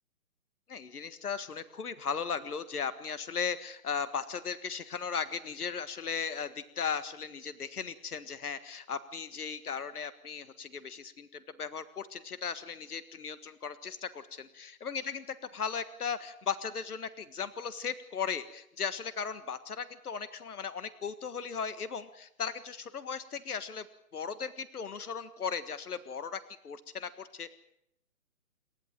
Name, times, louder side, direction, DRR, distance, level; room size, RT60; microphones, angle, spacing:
voice 1, 0.7-23.9 24.1-27.5, left 6 dB, 80° left, 14 dB, 1.7 m, -37 dB
28.5 x 11.5 x 9.1 m, 0.76 s
hypercardioid pair, 160°, 44 cm